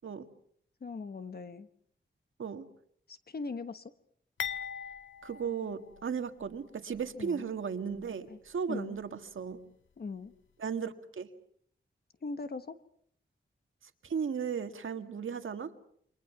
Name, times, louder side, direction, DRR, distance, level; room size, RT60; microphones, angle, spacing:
voice 1, 0.8-1.7 3.1-3.9 7.1-7.5 8.3-8.4 8.7-9.0 10.0-10.3 12.2-12.8, left 4 dB, 50° left, 10 dB, 1.2 m, -40 dB
sound 1, 4.4-6.6 6.9-7.1 7.9-8.1, left 7 dB, 75° left, 1.4 m, -41 dB
voice 2, 5.2-9.6 10.6-11.3 14.0-15.7, right 6 dB, 85° right, 7 dB, 1.8 m, -36 dB
29.0 x 25.0 x 6.0 m, 0.65 s
wide cardioid pair, 160°, 20 cm